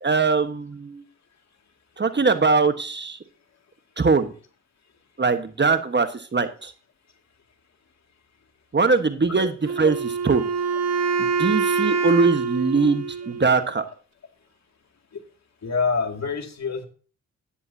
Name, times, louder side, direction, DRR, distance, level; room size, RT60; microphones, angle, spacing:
voice 1, 0.0-1.0 2.0-3.2 4.0-4.3 5.2-6.7 8.7-9.5 9.8-10.5 11.2-13.8, right 4 dB, 35° right, 9 dB, 1.4 m, -21 dB
Wind instrument woodwind instrument, 9.7-13.7, right 5 dB, 50° right, 1.3 m, -25 dB
voice 2, 15.6-16.9, left 5 dB, 55° left, 4 dB, 2.4 m, -26 dB
12.5 x 9.8 x 2.8 m, 0.38 s
supercardioid pair, 50°, 33 cm